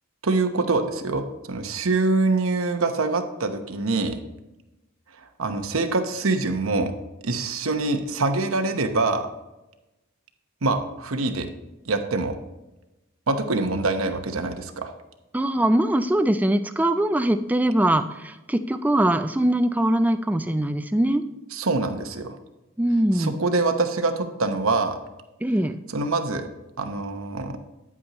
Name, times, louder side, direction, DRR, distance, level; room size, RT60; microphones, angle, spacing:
voice 1, 0.2-4.2 5.4-6.9 7.2-9.3 10.6-11.5 11.9-12.4 13.3-14.9 21.5-22.4 23.1-25.0 25.9-26.5 26.8-27.5, right 3 dB, 80° right, 7 dB, 0.9 m, -24 dB
voice 2, 15.3-21.2 22.8-23.3 25.4-25.8, right 1 dB, 10° right, 10 dB, 0.3 m, -22 dB
9.7 x 8.4 x 3.0 m, 1.0 s
head